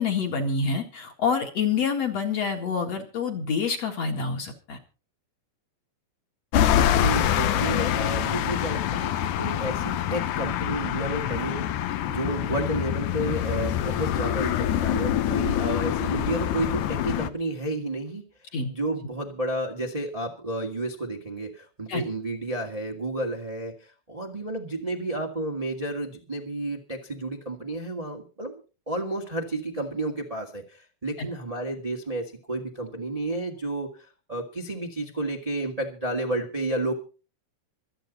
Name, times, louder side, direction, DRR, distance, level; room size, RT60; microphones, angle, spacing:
voice 1, 0.0-4.8 18.5-18.7 21.9-22.0, left 5 dB, 50° left, 3 dB, 2.7 m, -27 dB
sound 1, 6.5-17.3, left 10 dB, 70° left, 2.1 m, -25 dB
voice 2, 6.9-18.2 18.7-28.6 28.9-36.9, right 2 dB, 20° right, 1 dB, 1.0 m, -31 dB
25.5 x 8.7 x 4.1 m, 0.36 s
omnidirectional pair, 4.3 m